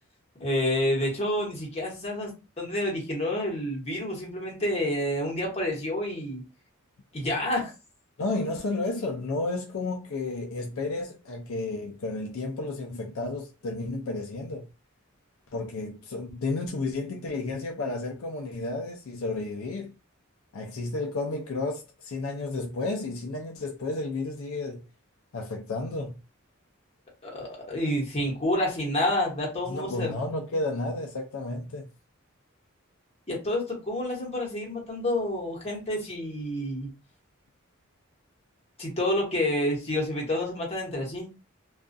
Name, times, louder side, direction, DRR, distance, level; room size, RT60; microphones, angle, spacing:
voice 1, 0.4-6.4 7.1-7.7 27.2-30.1 33.3-36.9 38.8-41.3, left 1 dB, 30° left, 1.1 m, -29 dB
voice 2, 8.2-14.7 15.5-20.0 20.5-24.8 25.3-26.2 29.7-31.9, left 2 dB, 75° left, 0.4 m, -32 dB
2.4 x 2.3 x 2.5 m
head